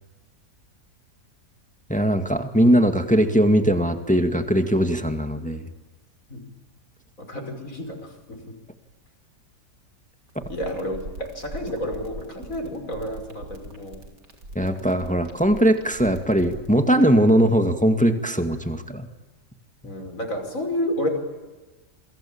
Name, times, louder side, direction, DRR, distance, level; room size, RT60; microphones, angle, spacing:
voice 1, 1.9-5.7 14.6-19.1, equal, 5° left, 7 dB, 2.0 m, -20 dB
voice 2, 7.2-8.0 8.3-8.4 10.5-14.0 19.8-21.1, equal, 50° left, 4 dB, 5.9 m, -30 dB
sound 1, 10.3-16.7, right 2 dB, 80° right, 4.5 m, -39 dB
28.5 x 23.5 x 8.8 m, 1.2 s
omnidirectional pair, 1.8 m